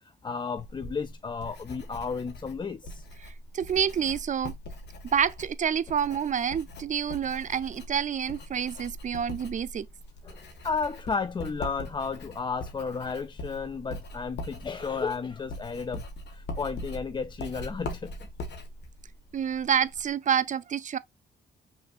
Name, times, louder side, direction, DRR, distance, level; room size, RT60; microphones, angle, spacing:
voice 1, 0.0-3.1 10.2-16.0 16.3-18.2, left 5 dB, 25° left, 0.4 m, -33 dB
Writing, 0.6-20.1, left 1 dB, 70° left, 1.5 m, -42 dB
voice 2, 3.2-4.5 5.1-9.9 19.3-21.0, right 8 dB, 45° right, 0.5 m, -28 dB
5.7 x 3.2 x 2.5 m
cardioid pair, 75°, 18 cm